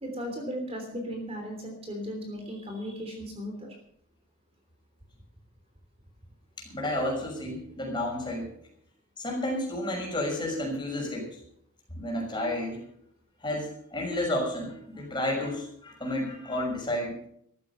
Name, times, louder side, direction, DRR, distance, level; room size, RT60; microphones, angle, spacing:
voice 1, 0.0-3.7 13.5-13.6, equal, 30° right, 3 dB, 3.2 m, -36 dB
voice 2, 6.6-8.5 9.2-11.4 12.0-12.8 13.4-17.2, left 1 dB, 20° left, -1 dB, 6.0 m, -31 dB
14.5 x 14.0 x 5.6 m, 0.69 s
head